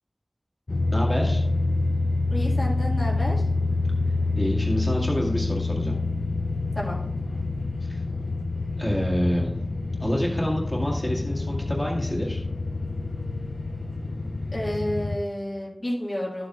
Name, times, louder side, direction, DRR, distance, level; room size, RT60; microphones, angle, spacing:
sound 1, 0.7-15.2, left 3 dB, 75° left, 0.5 m, -27 dB
voice 1, 0.9-1.4 4.4-6.0 7.8-8.0 8.8-9.5 10.0-12.4, equal, 10° left, -3 dB, 1.9 m, -27 dB
voice 2, 2.3-3.4 6.8-7.0 14.5-16.5, equal, 50° left, -4 dB, 2.0 m, -30 dB
11.5 x 7.7 x 2.5 m, 0.78 s
wide cardioid pair, 45°, 0 cm